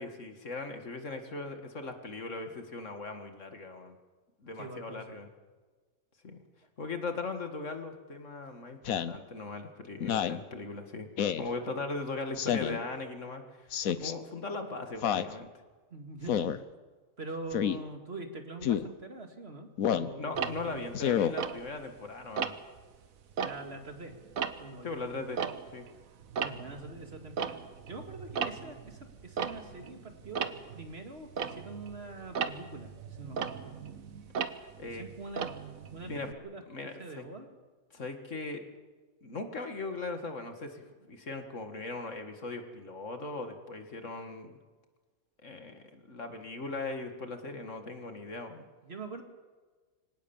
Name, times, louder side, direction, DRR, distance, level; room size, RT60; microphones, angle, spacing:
voice 1, 0.0-4.0 4.4-5.3 6.2-6.4 6.8-11.1 11.4-15.5 20.2-22.6 24.8-25.4 25.7-25.9 34.8-35.1 36.1-36.3 36.7-37.2 37.9-38.6 39.2-44.6 45.4-48.6, left 3 dB, 60° left, 6 dB, 2.3 m, -39 dB
voice 2, 4.6-5.2 15.9-16.7 17.2-20.9 23.4-24.1 24.6-25.0 26.4-27.6 27.8-32.9 33.2-33.6 34.8-35.5 35.9-36.6 37.0-37.5 48.8-49.2, right 2 dB, 45° right, 5 dB, 2.5 m, -44 dB
Speech synthesizer, 8.8-9.2 10.0-10.4 11.2-11.5 12.4-12.8 13.7-14.1 15.0-15.3 16.3-16.6 17.5-17.8 18.6-18.9 19.8-20.1 20.9-21.3, left 9 dB, 80° left, 1.3 m, -29 dB
Tick-tock, 20.3-22.0 22.4-22.8 23.2-26.0 26.2-36.3, right 6 dB, 80° right, 1.5 m, -37 dB
24.5 x 18.0 x 7.2 m, 1.4 s
omnidirectional pair, 1.5 m